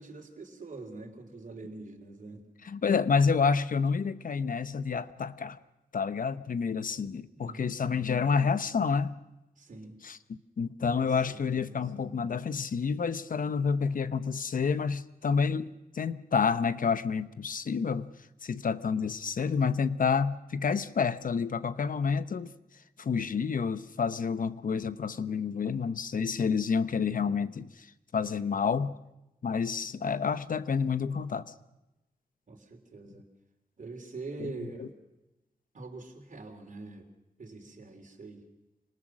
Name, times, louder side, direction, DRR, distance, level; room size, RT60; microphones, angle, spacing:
voice 1, 0.0-2.4 7.3-7.9 9.6-10.0 10.9-12.1 32.5-33.3 33.8-34.9 35.7-37.1 37.4-38.4, right 3 dB, 55° right, 3.4 m, -44 dB
voice 2, 2.6-5.6 5.9-9.2 10.0-18.1 18.4-22.5 23.0-28.9 29.4-31.5 34.4-34.5 34.8-34.9, left 5 dB, 60° left, 0.9 m, -29 dB
26.0 x 19.5 x 6.2 m
cardioid pair, 75°, 16 cm